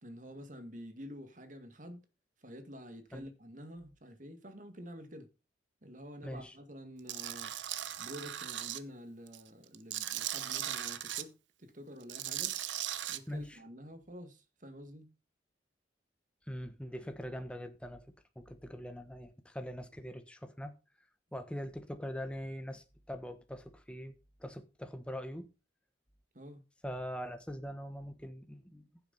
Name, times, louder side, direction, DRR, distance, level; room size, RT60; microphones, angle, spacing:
voice 1, 0.0-2.0 2.4-5.3 5.8-7.5 8.0-11.3 11.6-12.6 13.1-15.1 26.3-26.6, equal, 45° right, 1.9 m, -48 dB
voice 2, 6.2-6.6 13.3-13.6 16.5-20.7 21.3-25.5 26.8-28.9, equal, 5° left, 1.2 m, -42 dB
Tools, 7.1-8.8 9.3-11.2 12.0-13.2, right 12 dB, 85° right, 0.9 m, -38 dB
15.0 x 7.7 x 4.1 m
head